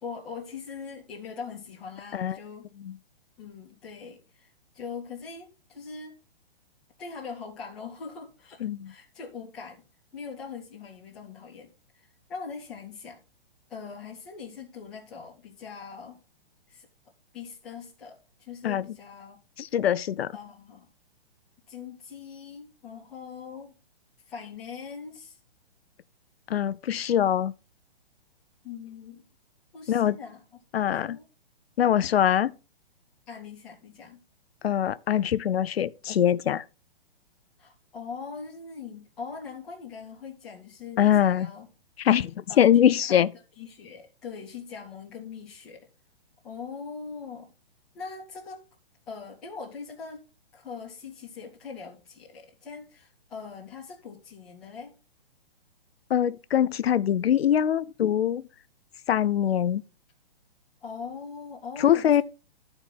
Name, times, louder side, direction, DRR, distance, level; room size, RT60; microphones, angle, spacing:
voice 1, 0.0-2.7 3.4-6.2 7.0-9.8 10.1-11.7 11.9-13.2 13.7-16.2 16.7-16.9 17.3-19.4 20.3-20.9 21.7-23.7 24.2-25.4 28.6-29.2 29.7-30.4 31.0-31.2 33.3-34.2 37.6-41.7 42.5-43.3 43.6-45.9 46.4-47.5 47.9-48.6 49.1-50.2 50.5-54.9 60.8-62.2, left 5 dB, ahead, 0.5 m, -41 dB
voice 2, 8.6-8.9 18.6-18.9 19.6-20.3 26.5-27.5 29.9-30.2 30.7-31.2 31.8-32.5 34.6-36.6 41.0-41.5 42.0-43.3 56.1-58.4 59.1-59.8 61.8-62.2, left 10 dB, 75° left, 0.6 m, -23 dB
13.0 x 4.4 x 4.3 m
hypercardioid pair, 180°, 31 cm